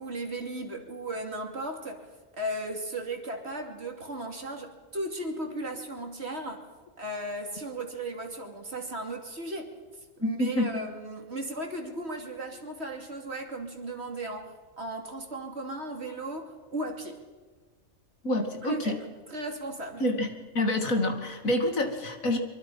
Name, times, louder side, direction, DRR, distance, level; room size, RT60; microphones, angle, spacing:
voice 1, 0.0-2.1 2.3-6.6 7.0-9.8 10.2-17.2 18.6-19.0 19.3-20.0, right 1 dB, 50° right, 3 dB, 3.0 m, -36 dB
voice 2, 10.2-10.7 18.2-19.0 20.0-22.4, left 1 dB, 80° left, 5 dB, 2.8 m, -27 dB
24.5 x 24.0 x 5.6 m, 1.4 s
omnidirectional pair, 1.4 m